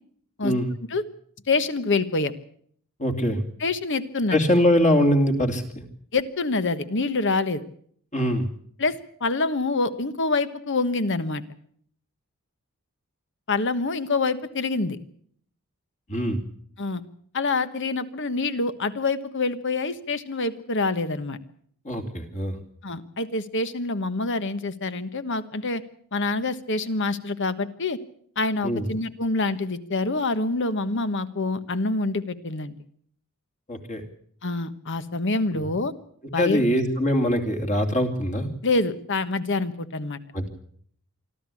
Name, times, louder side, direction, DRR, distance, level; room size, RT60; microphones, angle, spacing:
voice 1, 1.5-2.3 3.6-4.4 6.1-7.6 8.8-11.4 13.5-15.0 16.8-17.0 17.3-21.4 22.8-25.8 26.1-28.0 28.4-32.8 34.4-35.9 36.3-36.6 38.6-40.2, left 3 dB, 55° left, 12 dB, 1.3 m, -26 dB
voice 2, 3.0-3.4 4.3-5.8 8.1-8.5 16.1-16.4 21.8-22.6 28.6-28.9 33.7-34.0 35.5-35.7 36.4-38.5 40.3-40.5, equal, 35° left, 5 dB, 2.8 m, -23 dB
25.0 x 13.5 x 8.5 m, 0.62 s
head